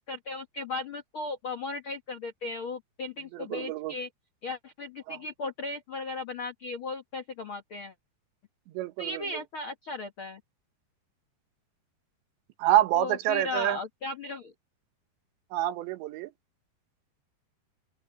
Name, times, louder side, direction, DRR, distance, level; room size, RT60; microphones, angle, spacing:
voice 1, 0.0-4.1 4.4-7.9 9.0-10.4 12.9-14.5, left 3 dB, 80° left, 1.1 m, -36 dB
voice 2, 3.3-3.9 5.1-5.2 8.7-9.2 12.6-13.8 15.5-16.3, right 13 dB, 90° right, 3.4 m, -27 dB
open air
omnidirectional pair, 4.9 m